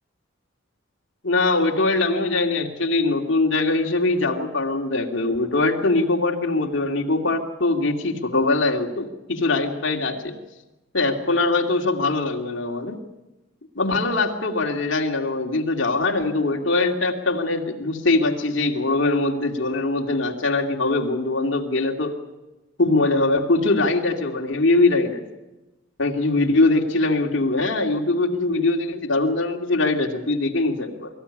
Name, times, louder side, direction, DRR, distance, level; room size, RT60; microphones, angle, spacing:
voice 1, 1.2-10.4 10.9-13.0 13.7-22.2 22.8-25.2 26.0-31.1, left 2 dB, 60° left, 1 dB, 2.5 m, -22 dB
24.0 x 14.5 x 9.9 m, 1.0 s
head